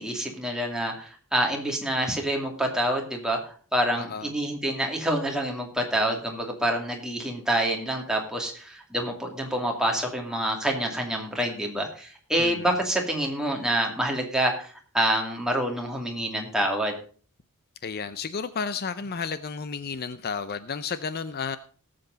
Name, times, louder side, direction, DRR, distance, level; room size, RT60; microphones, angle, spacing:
voice 1, 0.0-17.0, right 1 dB, 5° right, 1 dB, 2.5 m, -27 dB
voice 2, 4.0-4.3 12.4-12.7 17.8-21.6, left 5 dB, 45° left, 13 dB, 0.5 m, -32 dB
18.5 x 7.7 x 4.0 m, 0.42 s
head